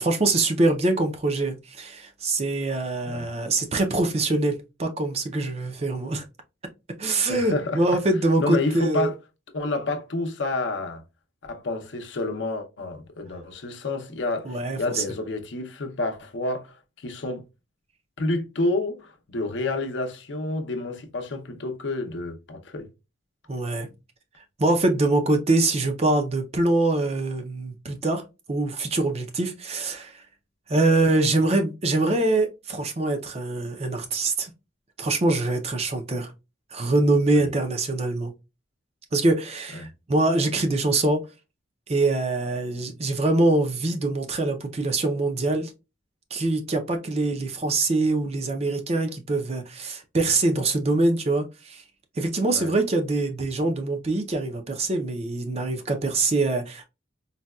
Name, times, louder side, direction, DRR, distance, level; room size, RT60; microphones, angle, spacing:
voice 1, 0.0-6.2 7.0-9.1 14.4-15.0 23.5-23.9 24.6-28.2 28.5-30.2 30.7-34.5 35.0-36.3 36.7-38.3 39.1-41.2 41.9-45.7 46.3-51.8 52.2-56.8, right 2 dB, 30° right, 0.5 m, -24 dB
voice 2, 7.3-7.8 8.4-9.1 9.5-11.0 11.4-17.4 18.2-22.9 30.9-31.0 37.3-37.5 39.7-39.9 52.5-52.7, left 2 dB, 70° left, 0.6 m, -29 dB
4.0 x 2.2 x 2.2 m
head